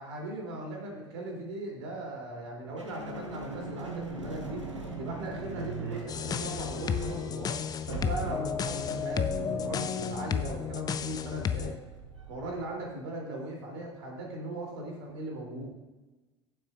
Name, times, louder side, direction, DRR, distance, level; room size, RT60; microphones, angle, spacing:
voice 1, 0.0-4.7 5.0-7.6 7.9-11.8 12.3-15.7, right 2 dB, 65° right, -1 dB, 2.9 m, -38 dB
sound 1, 2.8-12.9, right 3 dB, 85° right, 1.1 m, -41 dB
sound 2, 6.1-11.8, left 7 dB, 25° left, 0.5 m, -32 dB
14.5 x 7.6 x 2.4 m, 1.2 s
figure-of-eight pair, 70°, 15 cm